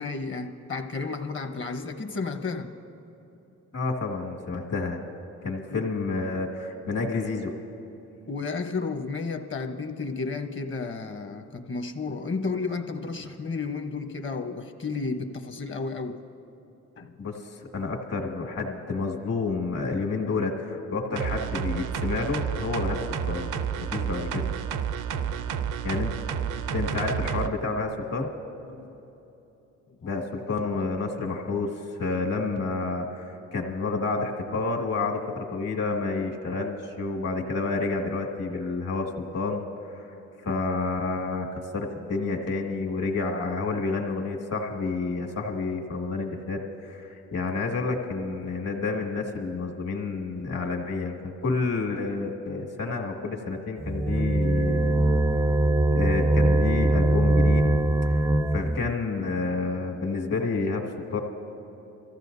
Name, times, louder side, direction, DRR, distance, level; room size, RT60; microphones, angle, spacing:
voice 1, 0.0-2.7 5.7-5.9 8.3-16.2 17.0-17.1 25.0-25.8 28.6-28.9, left 4 dB, 40° left, 7 dB, 1.0 m, -32 dB
voice 2, 3.7-5.0 5.4-7.5 17.2-17.4 17.7-23.0 23.3-23.5 23.8-24.5 25.8-26.1 26.7-28.3 30.0-39.6 39.9-40.1 40.4-41.5 41.7-51.2 51.4-55.1 55.9-57.7 58.0-61.2, left 3 dB, 55° left, 3 dB, 2.0 m, -29 dB
sound 1, 21.2-27.5 27.8-27.9, right 8 dB, 85° right, 0.6 m, -30 dB
sound 2, 53.8-58.9, right 2 dB, 10° right, 0.3 m, -22 dB
25.0 x 15.0 x 2.7 m, 3.0 s
cardioid pair, 90°, 30 cm